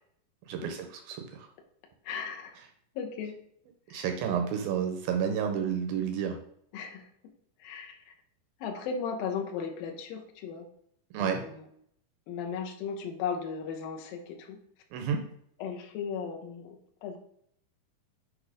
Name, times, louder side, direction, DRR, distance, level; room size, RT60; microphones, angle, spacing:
voice 1, 0.5-1.5 3.9-6.4 11.1-11.4 14.9-15.2, right 7 dB, 80° right, 4 dB, 2.1 m, -30 dB
voice 2, 2.1-2.5 3.0-3.4 3.9-4.1 6.7-7.1 7.6-8.1 8.6-10.7 11.2-11.6 12.3-14.6 15.6-17.2, left 6 dB, 75° left, 3 dB, 2.3 m, -36 dB
8.4 x 3.1 x 5.0 m, 0.70 s
omnidirectional pair, 5.0 m